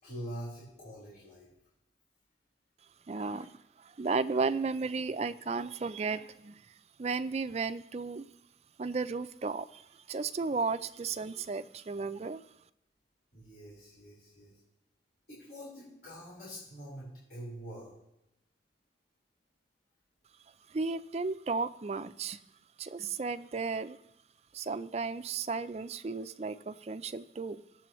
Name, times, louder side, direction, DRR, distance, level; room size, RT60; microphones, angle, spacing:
voice 1, 0.0-1.5 3.2-3.4 13.3-14.5 15.3-17.9, equal, 65° left, -8 dB, 4.1 m, -45 dB
voice 2, 3.1-6.6 7.0-8.3 8.8-12.4 20.7-22.4 22.8-24.0 24.5-27.6, right 4 dB, 35° right, 12 dB, 0.4 m, -34 dB
18.5 x 7.6 x 3.1 m, 0.85 s
head